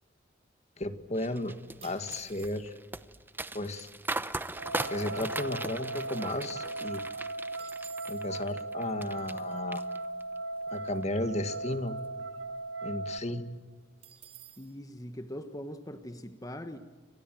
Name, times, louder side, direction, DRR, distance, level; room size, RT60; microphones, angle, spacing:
voice 1, 0.8-1.5 1.8-2.7 3.5-3.9 4.9-7.0 8.1-9.8 10.7-12.0 12.8-13.5, left 1 dB, 35° left, 9 dB, 1.9 m, -34 dB
sound 1, 1.2-9.4 9.7-10.4 10.8-11.0, right 2 dB, 10° right, 0.9 m, -39 dB
sound 2, 1.8-2.9 3.7-3.8 4.0-4.3 4.8-6.2 6.6-6.7 6.9-8.3 14.0-14.7, right 10 dB, 35° right, 3.4 m, -52 dB
sound 3, 4.5-13.2, right 2 dB, 85° right, 1.9 m, -38 dB
voice 2, 14.6-16.8, equal, 20° left, 8 dB, 1.4 m, -41 dB
29.0 x 26.0 x 7.7 m, 1.4 s
head